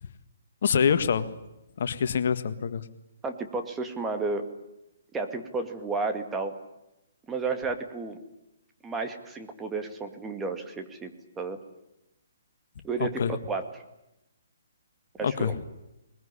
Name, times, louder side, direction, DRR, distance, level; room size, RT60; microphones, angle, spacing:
voice 1, 0.6-1.3 1.8-2.9 13.0-13.4 15.2-15.6, left 7 dB, 60° left, 11 dB, 1.7 m, -25 dB
voice 2, 3.2-4.4 5.1-6.5 7.3-8.2 8.8-11.6 12.8-13.8 15.2-15.5, right 3 dB, 10° right, 6 dB, 2.2 m, -32 dB
21.0 x 21.0 x 10.0 m, 0.92 s
hypercardioid pair, 150°, 0 cm